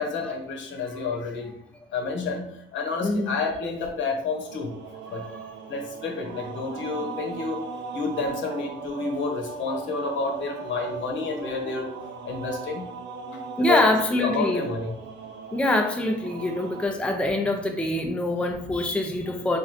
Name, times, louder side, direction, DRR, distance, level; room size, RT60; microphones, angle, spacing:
voice 1, 0.0-1.5 1.9-4.7 5.1-5.2 5.7-7.6 7.9-11.9 12.2-12.9 13.3-13.9 14.2-14.9, left 4 dB, 70° left, 2 dB, 0.9 m, -30 dB
voice 2, 3.0-3.4 5.1-5.3 13.6-14.7 15.5-19.6, left 1 dB, 5° left, 3 dB, 0.5 m, -24 dB
sound 1, 4.3-16.9, right 5 dB, 65° right, 0.6 m, -38 dB
3.1 x 2.5 x 4.1 m, 0.69 s
cardioid pair, 90°, 20 cm